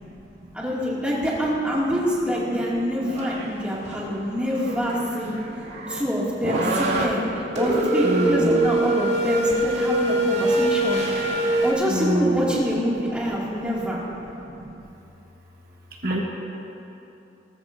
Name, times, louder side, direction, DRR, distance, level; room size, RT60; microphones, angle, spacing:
voice 1, 0.5-5.4 5.9-11.0 11.6-14.0, equal, 5° right, -6 dB, 2.2 m, -25 dB
sound 1, 3.1-3.5 3.9-4.1 4.5-6.0 6.4-7.0 7.6-11.7, right 1 dB, 75° right, 2.2 m, -24 dB
voice 2, 8.0-8.7 11.9-12.5 16.0-16.2, right 1 dB, 55° right, -2 dB, 1.3 m, -24 dB
19.5 x 14.0 x 2.6 m, 2.9 s
head